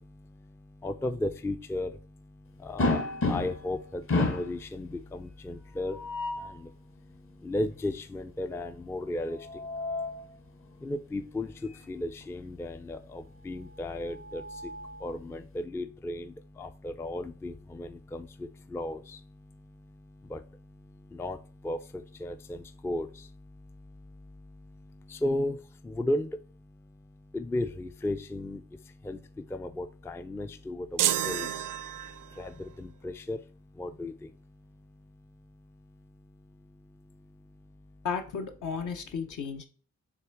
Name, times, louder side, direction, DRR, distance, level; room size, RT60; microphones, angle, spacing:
voice 1, 0.8-1.9 2.6-3.0 3.3-6.0 7.4-9.4 10.8-14.4 15.0-16.3 16.6-18.3 18.7-19.0 20.3-20.4 21.2-21.4 21.6-21.8 22.2-22.6 22.8-23.1 25.2-25.5 25.9-26.3 27.3-28.6 29.1-29.2 29.5-30.9 31.3-31.5 32.4-32.5 32.8-33.4 33.8-34.1, left 1 dB, 10° left, 10 dB, 0.3 m, -34 dB
sound 1, 2.8-3.7 4.1-4.6 5.8-6.6 9.2-10.2 11.7-11.8 12.2-12.3 13.8-15.1, left 2 dB, 45° left, 1.0 m, -31 dB
sound 2, 31.0-32.5, right 11 dB, 85° right, 0.5 m, -30 dB
voice 2, 38.0-39.6, left 6 dB, 75° left, 5 dB, 1.2 m, -34 dB
5.9 x 3.5 x 4.6 m, 0.40 s
cardioid pair, 120°, 31 cm